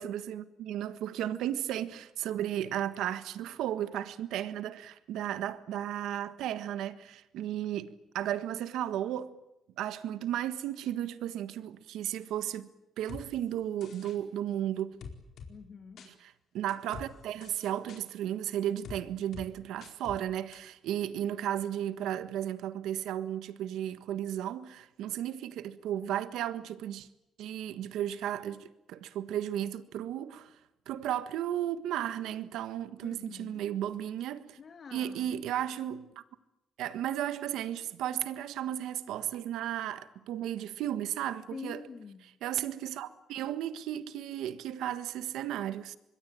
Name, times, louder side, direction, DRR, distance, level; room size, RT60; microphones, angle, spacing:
voice 1, 0.0-9.3 9.8-12.7 13.0-15.0 16.1-27.1 27.4-30.6 30.9-34.6 34.9-36.2 36.8-41.8 42.4-46.0, right 11 dB, 85° right, 1.5 m, -34 dB
sound 1, 13.1-13.2 13.8-14.2 15.0-15.5 16.0-16.1 16.7-17.1 17.4-18.0 18.8-19.0 19.3-19.5 19.8-20.2 20.5-20.6, left 5 dB, 70° left, 4.5 m, -45 dB
voice 2, 15.5-16.1 33.0-33.6 34.6-35.3 41.5-42.2, left 5 dB, 45° left, 2.4 m, -46 dB
25.0 x 22.0 x 9.0 m
cardioid pair, 90°, 0 cm